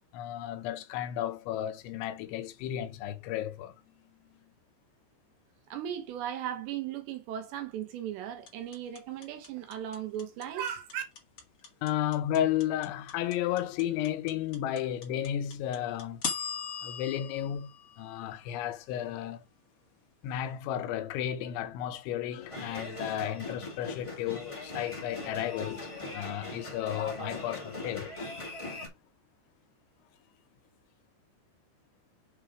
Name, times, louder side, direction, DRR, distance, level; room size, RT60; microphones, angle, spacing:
voice 1, 0.1-4.5 11.8-16.2 16.8-19.4 20.2-28.1, left 11 dB, 85° left, 3.2 m, -33 dB
voice 2, 5.7-11.0, right 10 dB, 75° right, 3.2 m, -37 dB
sound 1, 8.5-18.6, left 6 dB, 50° left, 1.7 m, -39 dB
sound 2, 22.4-28.9, left 2 dB, 20° left, 0.8 m, -40 dB
7.2 x 4.1 x 4.7 m
omnidirectional pair, 5.2 m